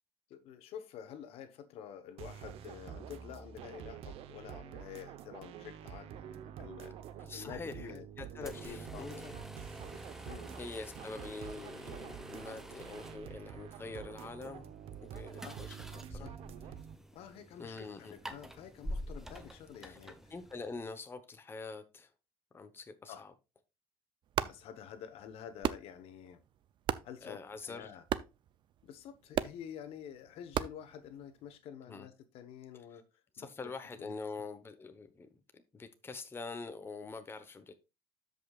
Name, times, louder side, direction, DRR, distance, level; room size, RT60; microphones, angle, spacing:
voice 1, 0.3-7.0 7.3-8.0 8.4-9.4 10.3-10.5 15.4-15.5 16.1-16.3 16.6-16.7 17.1-20.3 23.1-23.2 24.4-26.4 27.0-28.0 28.8-33.0 33.4-34.1, left 9 dB, 70° left, 1.2 m, -49 dB
sound 1, 2.2-16.9, right 9 dB, 70° right, 0.9 m, -47 dB
voice 2, 7.2-9.3 10.6-14.7 15.0-16.3 17.6-18.1 19.8-20.0 20.3-22.1 22.5-23.3 27.2-27.9 31.9-32.1 32.9-33.0 33.3-35.3 35.7-37.7, left 4 dB, 20° left, 1.1 m, -45 dB
sound 2, 8.4-20.9, equal, 5° right, 1.0 m, -48 dB
sound 3, 24.2-31.6, right 10 dB, 50° right, 0.5 m, -40 dB
13.0 x 5.4 x 2.4 m
cardioid pair, 105°, 10 cm